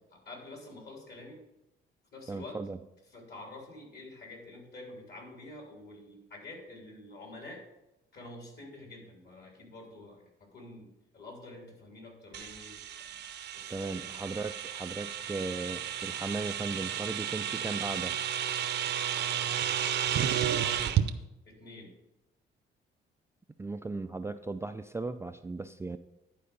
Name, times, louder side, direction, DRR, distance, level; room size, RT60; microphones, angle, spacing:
voice 1, 0.1-1.4 2.1-2.6 3.1-7.6 8.1-13.2 13.5-14.2 20.3-21.0 21.4-21.9, left 2 dB, 55° left, 0 dB, 3.3 m, -48 dB
voice 2, 2.3-2.8 13.7-18.2 23.6-26.0, right 3 dB, 15° right, 8 dB, 0.3 m, -37 dB
sound 1, 12.3-21.1, right 9 dB, 60° right, 0.7 m, -32 dB
11.0 x 4.6 x 5.3 m, 0.92 s
cardioid pair, 90°, 20 cm